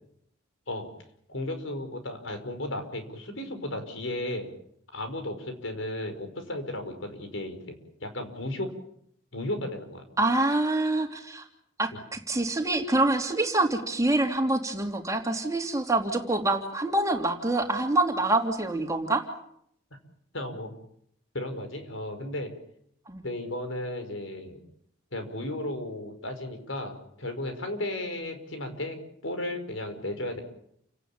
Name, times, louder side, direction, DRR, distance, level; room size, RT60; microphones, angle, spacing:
voice 1, 1.3-4.5 4.9-8.7 9.3-10.0 11.9-12.0 20.3-20.8 21.3-22.5 23.2-24.6 25.1-30.4, left 1 dB, 75° left, 7 dB, 5.5 m, -34 dB
voice 2, 10.2-11.4 11.8-19.2 23.1-23.2, right 2 dB, 15° right, 3 dB, 3.1 m, -26 dB
29.5 x 18.5 x 9.0 m, 0.71 s
head